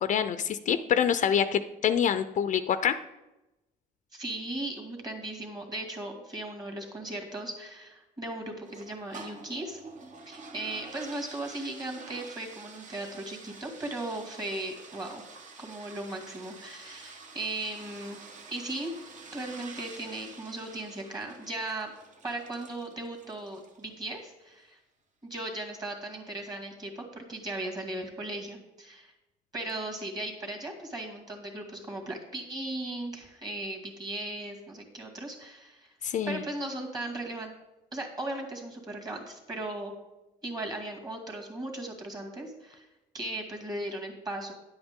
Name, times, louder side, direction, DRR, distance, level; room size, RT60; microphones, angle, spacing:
voice 1, 0.0-2.9 36.0-36.4, left 8 dB, 45° left, 11 dB, 0.5 m, -26 dB
voice 2, 4.1-9.8 10.3-15.2 15.6-18.2 18.5-18.9 19.3-21.9 22.2-24.8 25.2-29.1 29.5-35.9 36.3-37.5 37.9-39.9 40.4-42.9 43.1-44.5, right 2 dB, 25° right, 2 dB, 2.1 m, -37 dB
sound 1, 8.7-23.9, right 4 dB, 45° right, 1.1 m, -48 dB
10.5 x 7.9 x 3.7 m, 0.98 s
cardioid pair, 110°, 17 cm